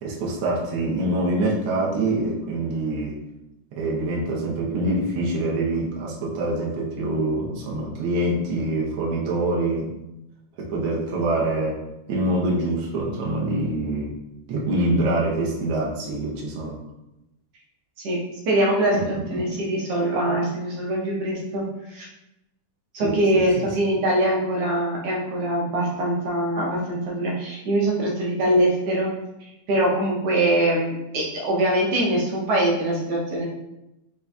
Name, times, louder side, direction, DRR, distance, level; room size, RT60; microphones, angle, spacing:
voice 1, 0.0-3.1 3.8-9.9 10.6-11.8 12.1-14.1 14.5-16.8 18.9-19.5 23.0-23.7, right 2 dB, 90° right, -3 dB, 1.1 m, -25 dB
voice 2, 18.5-22.1 22.9-29.1 29.7-33.4, right 1 dB, 70° right, -2 dB, 1.5 m, -23 dB
6.6 x 2.5 x 2.3 m, 0.92 s
omnidirectional pair, 3.5 m